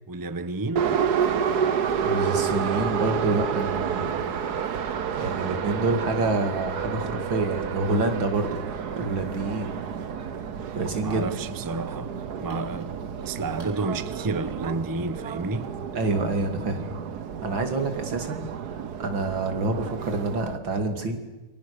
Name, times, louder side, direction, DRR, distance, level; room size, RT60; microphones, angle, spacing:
voice 1, 0.1-1.0 11.0-15.7, right 3 dB, 15° right, 0.8 m, -31 dB
Subway metro underground, 0.8-20.6, right 7 dB, 60° right, 1.6 m, -30 dB
voice 2, 2.0-4.1 5.2-9.8 10.7-11.3 15.9-16.9 17.4-21.2, right 2 dB, 75° right, 3.4 m, -27 dB
sound 1, 7.5-13.8, equal, 35° right, 5.8 m, -48 dB
28.0 x 24.5 x 6.9 m
omnidirectional pair, 2.1 m